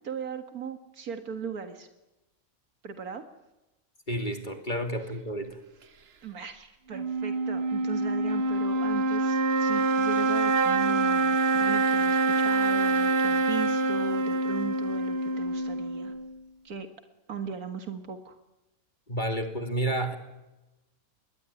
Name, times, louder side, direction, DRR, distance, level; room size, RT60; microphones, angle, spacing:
voice 1, 0.0-1.9 2.8-3.2 6.2-16.1 16.6-16.9 17.3-18.4, right 6 dB, 85° right, 7 dB, 2.2 m, -38 dB
voice 2, 4.1-5.6 19.1-20.2, right 1 dB, 30° left, 6 dB, 2.9 m, -30 dB
sound 1, 6.9-16.3, right 3 dB, 45° right, 1.3 m, -25 dB
27.0 x 21.0 x 9.9 m, 1.0 s
omnidirectional pair, 1.5 m